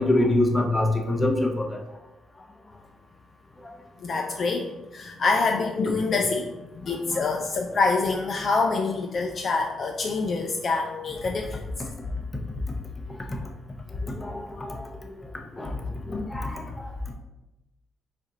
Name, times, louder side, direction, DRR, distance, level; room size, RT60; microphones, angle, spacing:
voice 1, 0.0-1.8 6.9-7.2 11.8-11.9 13.3-13.4 14.1-14.9 15.5-15.7 16.1-16.9, left 1 dB, 20° left, 2 dB, 0.7 m, -25 dB
voice 2, 4.0-11.6, left 4 dB, 50° left, 3 dB, 0.3 m, -26 dB
4.3 x 2.5 x 3.9 m, 1.0 s
cardioid pair, 90°, 0 cm